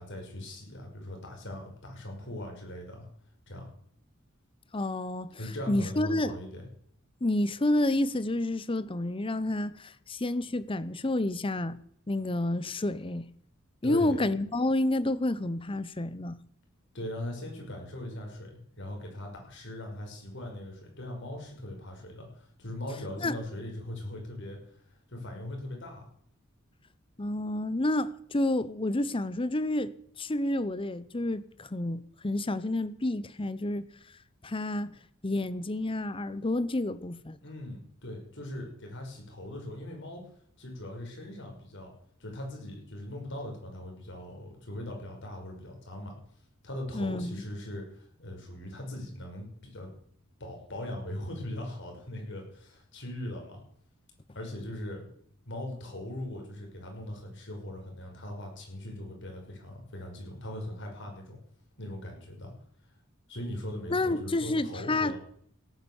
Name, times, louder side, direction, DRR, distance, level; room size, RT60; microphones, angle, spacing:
voice 1, 0.0-3.1 3.5-3.7 5.4-6.7 13.8-14.2 16.9-24.6 25.1-26.1 37.4-40.2 40.6-41.9 42.2-46.1 46.6-49.9 50.4-53.6 54.3-55.1 55.5-61.4 61.8-62.5 63.3-65.2, left 1 dB, 60° left, 5.8 m, -40 dB
voice 2, 4.7-5.3 5.7-6.4 7.2-11.8 12.1-13.3 13.8-16.4 23.2-23.4 27.2-33.9 34.4-35.0 35.2-37.4 46.9-47.4 63.9-65.1, left 1 dB, 25° left, 0.7 m, -29 dB
17.0 x 9.6 x 7.2 m
head